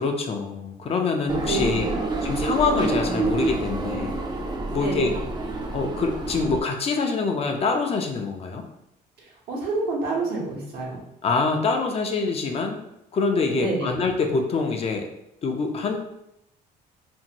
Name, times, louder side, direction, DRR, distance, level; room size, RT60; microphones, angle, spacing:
voice 1, 0.0-1.8 2.2-4.1 4.7-5.1 5.7-8.6 11.2-12.8 13.1-15.1 15.4-16.0, left 4 dB, 35° left, 3 dB, 0.4 m, -25 dB
sound 1, 1.3-6.6, right 2 dB, 25° right, 0.5 m, -27 dB
voice 2, 1.5-2.0 4.7-5.1 9.2-11.0 13.5-14.0, right 3 dB, 75° right, -3 dB, 1.1 m, -28 dB
2.6 x 2.5 x 2.9 m, 0.82 s
cardioid pair, 110°, 17 cm